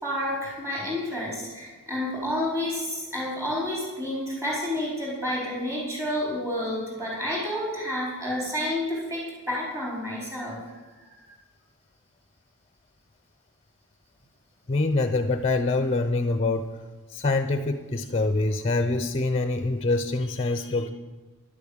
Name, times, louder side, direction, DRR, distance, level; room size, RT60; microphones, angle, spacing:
voice 1, 0.0-10.6 11.2-11.3, left 1 dB, 15° right, -4 dB, 4.5 m, -30 dB
voice 2, 14.7-16.7 17.1-20.9, left 3 dB, 30° left, 9 dB, 0.7 m, -25 dB
11.5 x 8.3 x 8.8 m, 1.3 s
head